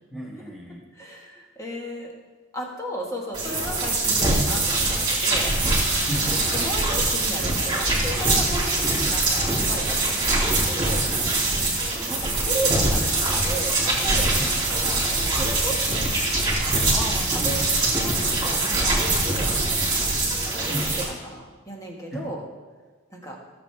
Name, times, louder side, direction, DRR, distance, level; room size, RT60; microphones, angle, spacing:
voice 1, 0.1-0.8 6.1-6.4 10.2-10.4 11.6-11.8 14.4-14.5 15.7-15.8 16.9-17.6 20.7-20.9 22.1-22.3, equal, ahead, -4 dB, 1.6 m, -34 dB
voice 2, 0.9-2.1 2.5-5.5 6.5-11.0 12.1-16.2 17.3-19.5 20.4-22.4 23.1-23.4, right 1 dB, 15° left, -1 dB, 1.5 m, -35 dB
sound 1, 3.3-21.0, right 2 dB, 20° right, 3.1 m, -23 dB
16.0 x 7.3 x 3.4 m, 1.4 s
head